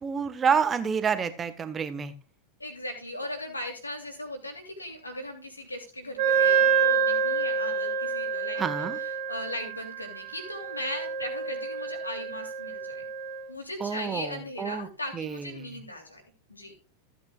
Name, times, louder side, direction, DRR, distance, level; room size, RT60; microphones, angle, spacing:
voice 1, 0.0-2.1 8.6-9.0 13.8-14.9 15.1-15.8, right 6 dB, 20° right, 11 dB, 1.3 m, -29 dB
voice 2, 2.6-13.0 13.5-16.2 16.5-16.7, left 1 dB, 80° left, 3 dB, 3.0 m, -38 dB
Wind instrument woodwind instrument, 6.2-13.5, right 6 dB, 55° right, 2.0 m, -27 dB
15.5 x 8.6 x 2.4 m, 0.34 s
figure-of-eight pair, 90°, 0 cm